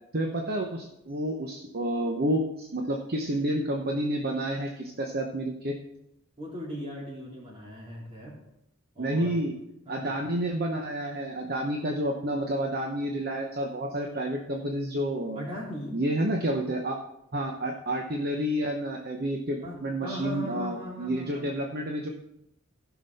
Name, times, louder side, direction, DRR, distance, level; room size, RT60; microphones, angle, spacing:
voice 1, 0.1-5.7 9.0-9.5 9.9-15.5 15.9-17.0 17.3-22.1, right 1 dB, 45° right, 2 dB, 0.8 m, -29 dB
voice 2, 6.4-8.3 8.9-9.4 9.8-10.0 15.3-16.0 19.6-21.5, equal, 25° right, -5 dB, 3.4 m, -38 dB
15.5 x 6.1 x 4.1 m, 0.82 s
head